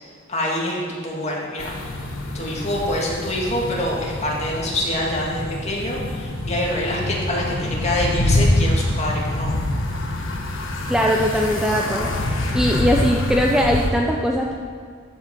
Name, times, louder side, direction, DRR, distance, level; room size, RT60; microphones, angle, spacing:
voice 1, 0.3-1.9 2.3-9.5, left 1 dB, 30° left, -3 dB, 2.1 m, -25 dB
sound 1, 1.6-13.9, left 1 dB, 65° left, 1.3 m, -25 dB
voice 2, 10.9-12.1 12.5-14.5, equal, 5° right, 0 dB, 0.5 m, -20 dB
13.5 x 5.6 x 6.1 m, 2.1 s
head